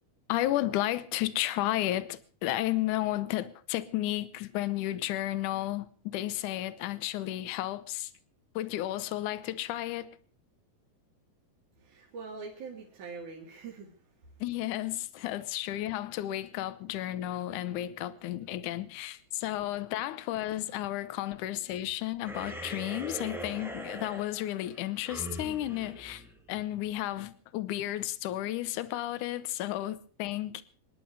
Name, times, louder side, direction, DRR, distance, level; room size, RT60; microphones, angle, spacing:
voice 1, 0.3-8.1 8.6-10.1 14.4-26.2 26.5-30.6, left 14 dB, 70° left, 2.1 m, -33 dB
voice 2, 11.7-14.7 15.3-15.4 19.2-19.7 21.3-21.4, right 4 dB, 55° right, 3.8 m, -45 dB
sound 1, 22.2-26.9, right 1 dB, ahead, 0.6 m, -42 dB
26.0 x 11.0 x 4.8 m
omnidirectional pair, 4.2 m